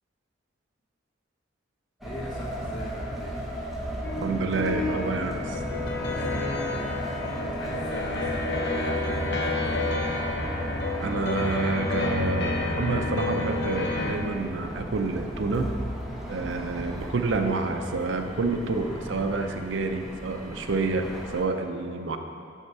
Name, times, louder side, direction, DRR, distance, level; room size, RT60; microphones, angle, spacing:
voice 1, 2.0-3.4 5.7-9.9, equal, 90° left, -5 dB, 1.8 m, -42 dB
sound 1, 2.0-21.4, right 1 dB, ahead, 0.8 m, -36 dB
sound 2, 4.0-14.2, left 2 dB, 60° left, 0.7 m, -29 dB
voice 2, 4.2-5.6 11.0-15.7 16.3-22.2, right 3 dB, 70° right, 6 dB, 0.6 m, -28 dB
6.8 x 5.5 x 4.7 m, 2.3 s
head